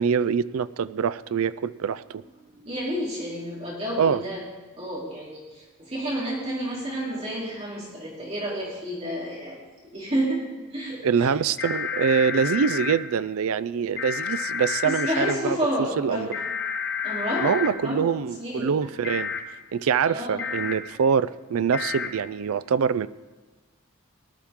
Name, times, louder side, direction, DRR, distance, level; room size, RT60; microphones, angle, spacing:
voice 1, 0.0-2.0 4.0-4.2 11.0-15.4 16.0-16.3 17.4-19.3 19.7-23.1, right 6 dB, 70° right, 16 dB, 0.4 m, -24 dB
voice 2, 2.3-4.4 4.8-11.3 14.8-16.4 17.0-18.1 18.4-18.7 20.0-20.5 20.7-20.8, equal, 30° right, -5 dB, 3.2 m, -30 dB
sound 1, 11.6-12.9 14.0-15.3 16.3-17.7 19.0-19.4 20.4-20.7 21.7-22.1, left 6 dB, 45° left, 1.3 m, -30 dB
19.0 x 12.0 x 3.6 m, 1.3 s
head